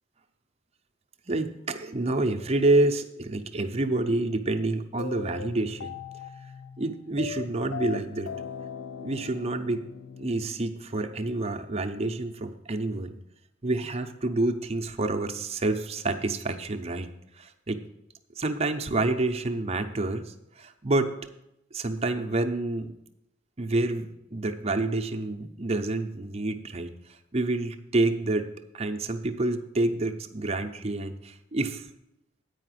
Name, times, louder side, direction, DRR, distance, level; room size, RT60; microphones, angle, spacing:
voice 1, 1.3-6.0 6.8-8.3 9.0-9.8 10.2-13.2 13.6-17.1 17.4-17.8 18.4-21.1 21.7-22.9 23.6-26.9 27.3-31.9, right 2 dB, 30° right, 5 dB, 0.7 m, -28 dB
sound 1, 5.0-11.2, left 6 dB, 60° left, 0.4 m, -40 dB
9.1 x 5.0 x 7.7 m, 0.83 s
head